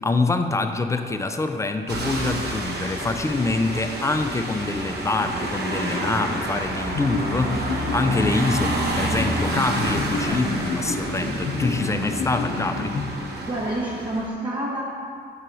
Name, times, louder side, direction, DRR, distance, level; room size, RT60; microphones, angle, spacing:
voice 1, 0.0-12.9, left 3 dB, 15° left, 7 dB, 0.3 m, -25 dB
sound 1, 1.9-14.3, right 1 dB, 55° right, 0.9 m, -29 dB
sound 2, 6.9-13.6, left 3 dB, 85° left, 0.6 m, -30 dB
voice 2, 13.4-14.8, right 1 dB, 25° right, -4 dB, 0.7 m, -28 dB
5.6 x 4.7 x 3.9 m, 2.4 s
cardioid pair, 90°, 20 cm